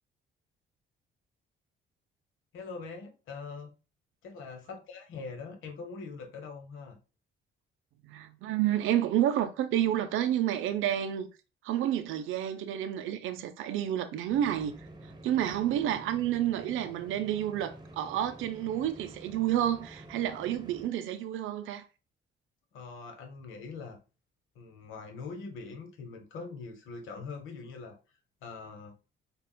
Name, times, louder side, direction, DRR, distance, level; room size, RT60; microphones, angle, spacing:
voice 1, 2.5-3.7 4.2-7.0 22.7-24.0 24.5-28.0 28.4-28.9, left 4 dB, 90° left, 1.0 m, -43 dB
voice 2, 8.0-11.3 11.6-21.8, right 11 dB, 85° right, 0.5 m, -30 dB
sound 1, 14.3-20.9, right 1 dB, 20° right, 0.9 m, -49 dB
6.8 x 2.4 x 2.2 m
cardioid pair, 90°, 20 cm